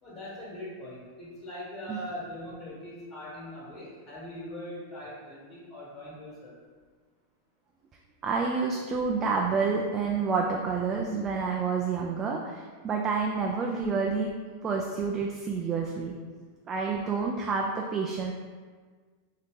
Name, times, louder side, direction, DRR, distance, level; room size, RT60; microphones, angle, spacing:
voice 1, 0.0-6.6, left 1 dB, 40° left, -6 dB, 1.5 m, -41 dB
voice 2, 8.2-14.4 14.6-16.2 16.7-18.3, right 5 dB, 30° right, 0 dB, 0.3 m, -29 dB
2.8 x 2.8 x 3.5 m, 1.5 s
hypercardioid pair, 105°, 0 cm